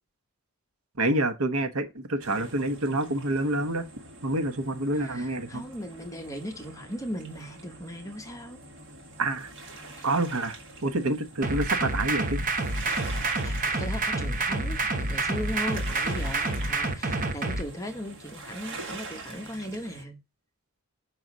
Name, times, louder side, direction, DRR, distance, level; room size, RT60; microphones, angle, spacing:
voice 1, 1.0-3.8 4.2-5.6 9.2-9.5 10.0-10.6 10.8-12.4, right 2 dB, 75° right, 1.0 m, -27 dB
sound 1, 2.2-20.0, right 3 dB, 60° right, 2.0 m, -45 dB
voice 2, 4.9-8.6 10.0-10.1 12.9-13.1 13.4-20.2, equal, 15° left, 1.1 m, -38 dB
sound 2, 11.4-17.6, right 2 dB, 40° right, 0.9 m, -28 dB
5.9 x 3.9 x 6.1 m
head